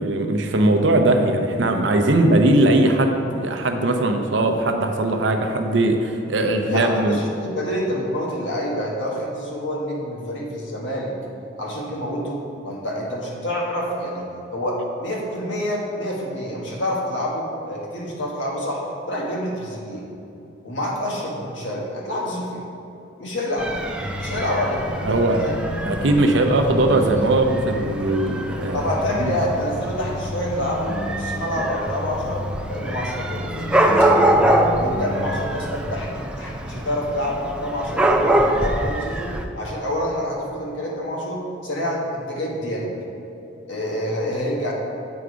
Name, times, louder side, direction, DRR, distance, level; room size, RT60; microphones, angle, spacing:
voice 1, 0.0-7.2 25.0-25.4 25.8-28.8 29.2-29.3, right 2 dB, 70° right, 5 dB, 0.7 m, -19 dB
voice 2, 6.7-11.1 11.6-14.3 14.5-20.0 20.6-22.6 23.2-23.7 24.1-25.5 28.7-33.7 34.0-34.1 34.7-42.9 43.7-44.7, equal, 70° left, -3 dB, 1.5 m, -27 dB
Dog / Cat, 23.6-39.5, right 1 dB, 5° right, 0.3 m, -24 dB
sound 1, 24.0-36.1, left 2 dB, 30° left, 0.7 m, -32 dB
8.0 x 4.8 x 5.0 m, 2.7 s
head